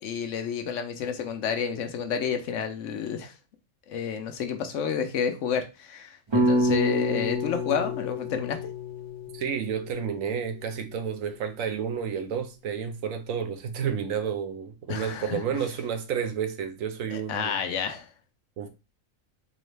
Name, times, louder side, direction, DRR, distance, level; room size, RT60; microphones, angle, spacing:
voice 1, 0.0-3.3 3.9-8.6 14.9-15.6 17.1-18.1, left 7 dB, 70° left, 0.9 m, -30 dB
sound 1, 6.3-10.6, equal, 35° right, 0.4 m, -28 dB
voice 2, 9.3-17.6 18.6-18.7, right 7 dB, 80° right, 1.1 m, -31 dB
3.8 x 3.1 x 3.2 m
omnidirectional pair, 1.4 m